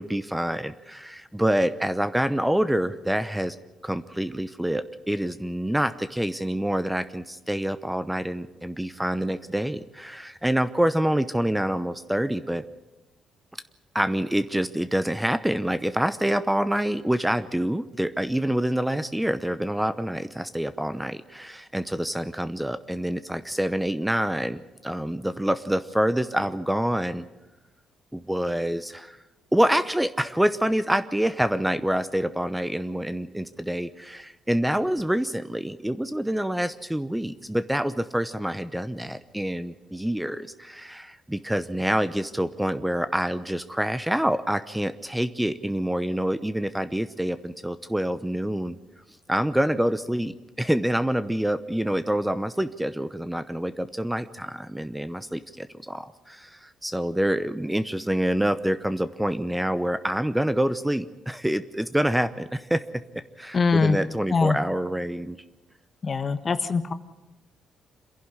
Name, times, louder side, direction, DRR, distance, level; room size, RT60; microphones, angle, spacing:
voice 1, 0.0-3.6 3.8-12.6 13.9-27.3 28.1-29.2 29.5-48.8 49.3-63.0 63.4-65.4, right 1 dB, 5° right, 12 dB, 0.8 m, -26 dB
voice 2, 63.5-64.0 64.3-64.6 66.0-66.9, left 4 dB, 40° left, 11 dB, 1.4 m, -22 dB
27.0 x 11.0 x 9.8 m, 1.0 s
cardioid pair, 90°, 0 cm